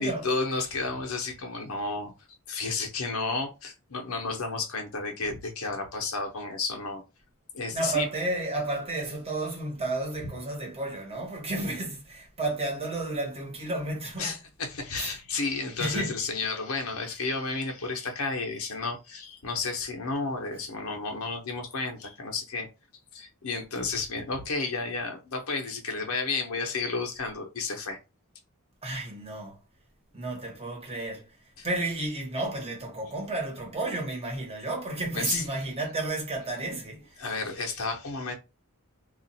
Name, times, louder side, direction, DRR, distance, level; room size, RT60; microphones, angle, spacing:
voice 1, 0.0-2.1 2.5-7.0 7.5-8.1 10.2-10.3 14.2-22.7 23.1-28.0 31.6-31.7 35.1-35.4 37.2-38.3, left 4 dB, 75° left, 0.9 m, -32 dB
voice 2, 7.7-14.4 15.0-15.2 15.8-16.2 28.8-29.6 30.1-31.3 31.6-37.2, right 2 dB, 25° right, 1.2 m, -32 dB
2.5 x 2.5 x 4.0 m
head